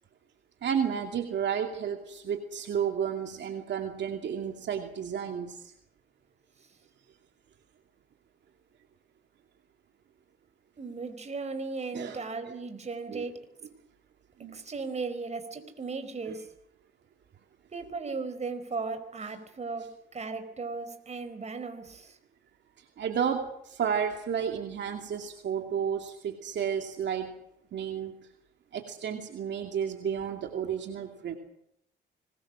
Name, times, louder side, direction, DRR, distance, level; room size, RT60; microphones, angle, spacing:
voice 1, 0.6-5.7 11.9-12.2 13.1-13.2 14.4-14.6 23.0-27.3 27.7-28.3 28.7-31.4, right 8 dB, 65° right, 4 dB, 2.6 m, -32 dB
voice 2, 10.8-13.3 14.5-16.5 17.7-22.2, right 4 dB, 35° right, 8 dB, 4.7 m, -36 dB
25.5 x 21.0 x 6.3 m, 0.78 s
cardioid pair, 90°, 20 cm